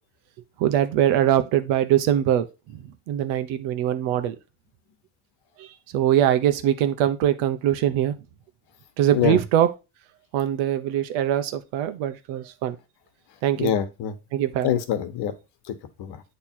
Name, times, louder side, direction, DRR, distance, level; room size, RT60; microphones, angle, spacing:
voice 1, 0.6-2.5 3.1-4.3 5.9-8.1 9.0-9.7 10.3-12.7 13.4-13.7 14.3-14.7, right 11 dB, 85° right, 1.0 m, -22 dB
voice 2, 13.6-14.1 14.6-15.3 15.7-16.2, left 10 dB, 60° left, 1.3 m, -25 dB
8.7 x 3.3 x 4.5 m
cardioid pair, 135°, 46 cm